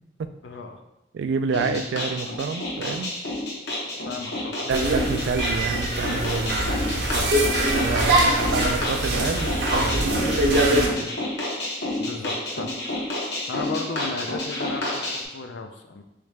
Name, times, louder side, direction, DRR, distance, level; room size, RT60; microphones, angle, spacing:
voice 1, 0.4-0.8 4.1-4.5 7.1-7.3 12.0-12.7 13.5-16.0, left 4 dB, 80° left, 6 dB, 0.4 m, -35 dB
voice 2, 1.1-3.1 4.7-7.2 7.7-11.1, right 5 dB, 80° right, 9 dB, 0.3 m, -29 dB
sound 1, 1.5-15.2, left 1 dB, 65° left, 0.9 m, -30 dB
sound 2, 4.7-10.9, right 1 dB, 60° right, 0.7 m, -23 dB
3.6 x 3.2 x 3.3 m, 0.91 s
head